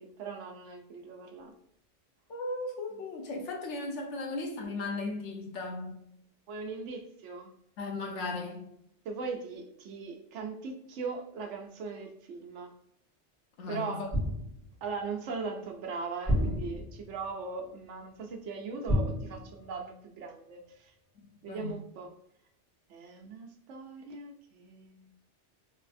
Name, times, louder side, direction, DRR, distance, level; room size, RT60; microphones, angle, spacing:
voice 1, 0.0-1.5 6.5-7.5 9.0-12.7 13.7-14.0 14.8-20.9 21.4-22.1 22.9-25.1, right 4 dB, 80° right, 0.9 m, -39 dB
voice 2, 2.3-6.0 7.8-8.7 13.6-14.1 21.5-21.7, left 2 dB, 85° left, 1.1 m, -36 dB
sound 1, 14.1-14.9 16.3-17.3 18.9-20.0 20.3-20.5, equal, 35° left, 1.7 m, -31 dB
3.3 x 3.1 x 2.5 m
omnidirectional pair, 1.2 m